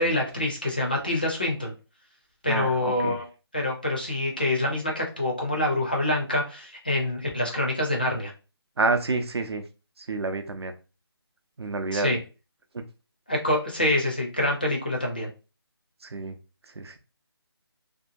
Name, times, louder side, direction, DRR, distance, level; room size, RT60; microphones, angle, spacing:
voice 1, 0.0-1.7 2.4-3.3 3.5-8.3 11.9-12.2 13.3-15.3, left 1 dB, 20° left, -1 dB, 0.4 m, -26 dB
voice 2, 2.5-3.2 8.8-9.6 10.1-10.7 11.6-12.2 16.0-16.4 16.8-17.0, right 3 dB, 75° right, 7 dB, 0.6 m, -28 dB
2.7 x 2.3 x 2.6 m, 0.32 s
figure-of-eight pair, 175°, 14 cm